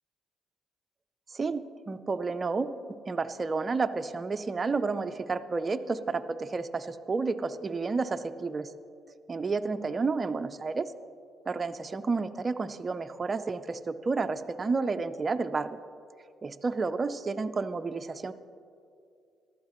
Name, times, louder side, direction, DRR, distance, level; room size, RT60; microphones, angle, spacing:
voice 1, 1.3-2.7 3.1-8.7 9.3-10.9 11.5-15.8 16.4-18.3, right 4 dB, 30° right, 9 dB, 0.5 m, -31 dB
15.0 x 12.5 x 3.0 m, 2.4 s
cardioid pair, 90°, 0 cm